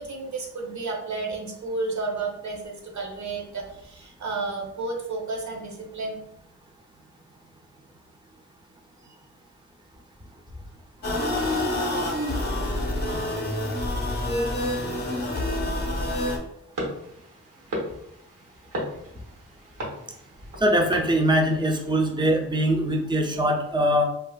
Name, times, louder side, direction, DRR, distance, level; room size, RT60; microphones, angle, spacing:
voice 1, 0.0-6.2 9.0-9.2, right 3 dB, 60° right, 0 dB, 0.7 m, -32 dB
sound 1, 11.0-16.4, left 1 dB, 30° left, 0.6 m, -27 dB
sound 2, 16.7-21.9, equal, 90° right, 1.0 m, -36 dB
voice 2, 20.6-24.0, equal, 15° right, 1 dB, 0.4 m, -22 dB
2.8 x 2.3 x 2.3 m, 0.76 s
wide cardioid pair, 85°, 32 cm